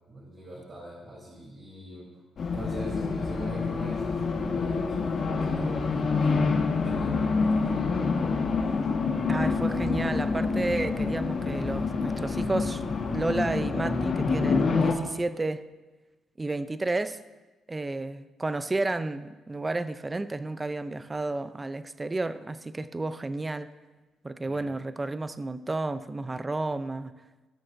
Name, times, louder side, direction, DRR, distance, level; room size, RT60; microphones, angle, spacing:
voice 1, 0.1-2.2 2.5-8.5 24.4-24.7, right 1 dB, 45° right, 3.4 m, -43 dB
Race car auto racing, 2.4-14.9, left 4 dB, 55° left, 1.4 m, -27 dB
voice 2, 9.3-12.8 13.1-15.7 16.4-17.2 17.7-23.7 24.2-27.1, right 2 dB, 20° right, 0.5 m, -31 dB
19.0 x 6.4 x 2.6 m
cardioid pair, 90°, 0 cm